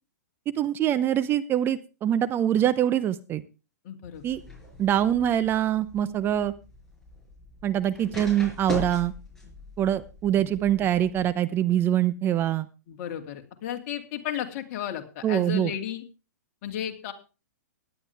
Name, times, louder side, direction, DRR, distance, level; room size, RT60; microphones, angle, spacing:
voice 1, 0.6-3.4 4.2-4.4 4.8-6.5 7.6-9.1 9.8-12.7 15.2-15.7, right 11 dB, 25° right, 13 dB, 0.7 m, -24 dB
voice 2, 3.8-4.2 10.3-10.5 12.9-16.0 16.6-17.1, left 10 dB, 45° left, 5 dB, 2.4 m, -34 dB
sound 1, 4.1-11.3, left 2 dB, 5° left, 5.5 m, -41 dB
17.5 x 11.0 x 3.4 m, 0.32 s
hypercardioid pair, 125°, 9 cm